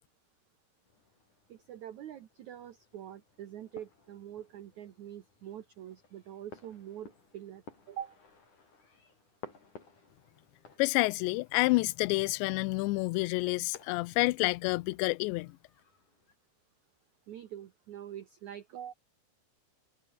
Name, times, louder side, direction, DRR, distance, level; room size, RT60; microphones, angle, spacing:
sound 1, 0.8-16.4, left 4 dB, 45° left, 7.0 m, -57 dB
voice 1, 1.5-8.2 17.3-18.9, right 10 dB, 75° right, 1.7 m, -45 dB
voice 2, 10.8-15.6, left 23 dB, 80° left, 2.8 m, -29 dB
omnidirectional pair, 5.2 m